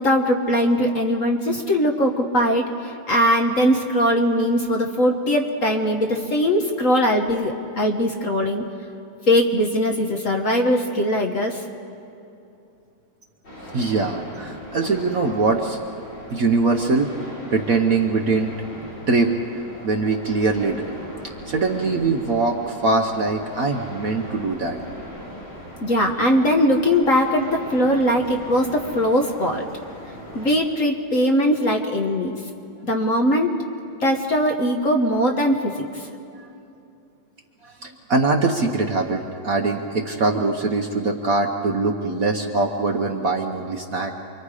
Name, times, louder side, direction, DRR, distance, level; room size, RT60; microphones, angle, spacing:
voice 1, 0.0-8.6 9.3-11.6 25.8-29.7 30.3-32.4 32.8-33.5 34.0-36.1, equal, 45° left, 2 dB, 1.4 m, -20 dB
sound 1, 13.4-30.5, equal, 65° left, 7.2 m, -39 dB
voice 2, 13.7-15.8 16.3-17.1 17.5-18.5 19.1-21.0 21.5-24.8 25.3-25.4 37.6-44.1, right 3 dB, 50° right, 3 dB, 1.2 m, -22 dB
28.5 x 24.0 x 4.9 m, 2.7 s
omnidirectional pair, 2.3 m